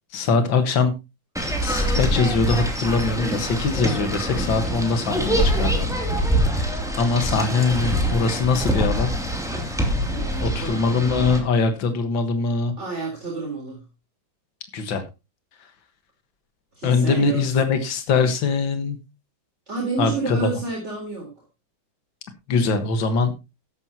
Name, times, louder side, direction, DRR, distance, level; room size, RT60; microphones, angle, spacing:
voice 1, 0.1-0.9 1.6-6.0 6.5-9.1 10.4-12.7 14.7-15.0 16.8-19.0 20.0-20.5 22.5-23.3, left 4 dB, 75° left, 8 dB, 2.2 m, -22 dB
sound 1, 1.4-11.4, equal, ahead, 2.5 m, -24 dB
voice 2, 10.1-10.7 12.8-13.8 16.7-17.4 19.7-21.3, right 4 dB, 35° right, -3 dB, 4.2 m, -29 dB
13.5 x 11.0 x 2.9 m, 0.26 s
omnidirectional pair, 2.1 m